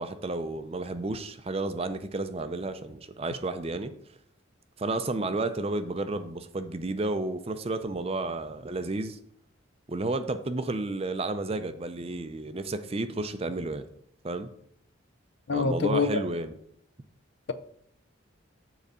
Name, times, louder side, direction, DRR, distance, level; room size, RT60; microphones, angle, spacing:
voice 1, 0.0-3.9 4.8-9.2 9.9-13.9 14.2-14.5 15.5-16.5, right 2 dB, 30° right, 0.5 m, -32 dB
voice 2, 15.5-16.2, left 4 dB, 60° left, 0.5 m, -25 dB
7.4 x 3.9 x 6.7 m
head